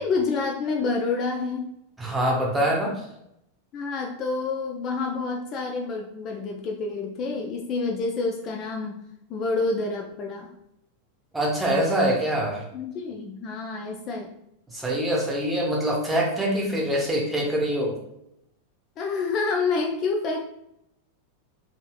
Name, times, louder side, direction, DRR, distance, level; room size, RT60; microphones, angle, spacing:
voice 1, 0.0-1.7 3.7-9.0 9.3-10.5 12.7-14.3 19.0-20.4, left 4 dB, 35° left, 2 dB, 0.3 m, -28 dB
voice 2, 2.0-2.9 11.3-12.6 14.7-18.0, right 1 dB, 10° right, -3 dB, 0.9 m, -24 dB
3.2 x 2.7 x 2.3 m, 0.79 s
figure-of-eight pair, 90°, 0 cm